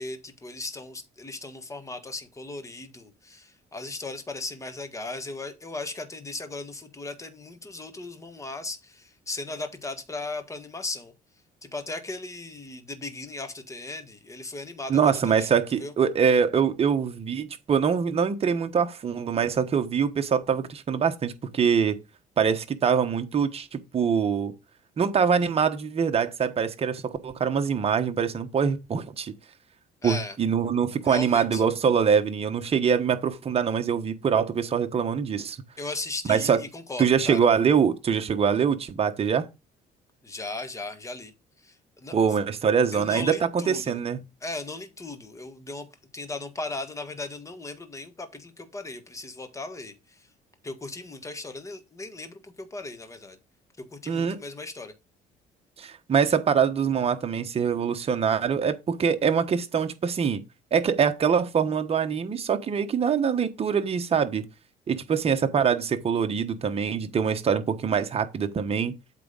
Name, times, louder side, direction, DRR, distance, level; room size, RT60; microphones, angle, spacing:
voice 1, 0.0-11.1 11.6-15.9 30.0-30.4 31.0-31.6 35.8-37.4 40.2-41.3 41.6-42.1 42.9-44.0 44.4-45.9 46.1-50.3 50.6-53.4 53.8-54.9, left 2 dB, 20° left, 1.5 m, -37 dB
voice 2, 14.9-22.0 22.4-24.5 25.0-29.3 30.0-35.6 36.3-36.6 37.0-39.5 42.1-44.2 54.1-54.4 55.8-60.4 60.7-64.4 64.9-69.0, right 7 dB, 35° right, 1.2 m, -24 dB
8.2 x 3.5 x 5.2 m
cardioid pair, 110°, 17 cm